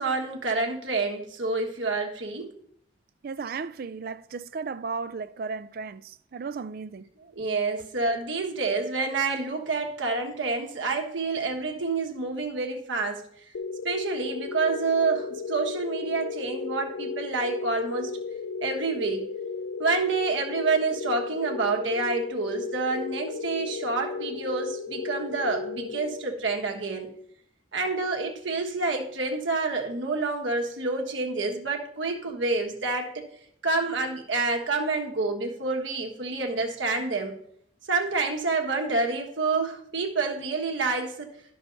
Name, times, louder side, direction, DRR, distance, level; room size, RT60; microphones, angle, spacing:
voice 1, 0.0-2.5 7.3-13.2 13.8-18.1 18.6-19.3 19.8-27.1 27.7-33.1 33.6-37.4 37.9-41.3, right 3 dB, 75° right, 1.5 m, -28 dB
voice 2, 3.2-7.1, right 5 dB, 50° right, 0.3 m, -35 dB
sound 1, 13.5-26.7, left 4 dB, 85° left, 0.4 m, -35 dB
10.5 x 6.3 x 3.9 m
head